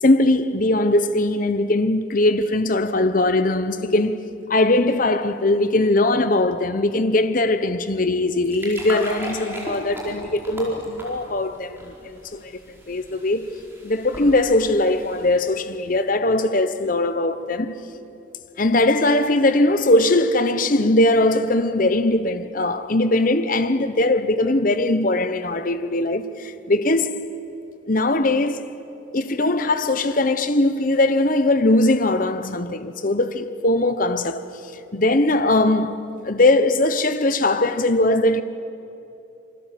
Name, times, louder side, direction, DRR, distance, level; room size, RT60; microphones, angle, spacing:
voice 1, 0.0-4.2 4.5-12.5 12.9-13.4 13.8-17.7 18.6-27.2 27.9-28.7 29.1-34.4 34.9-38.4, left 2 dB, 40° left, 0.9 m, -20 dB
sound 1, 8.2-15.7, right 1 dB, 10° right, 4.7 m, -38 dB
26.5 x 24.0 x 7.6 m
head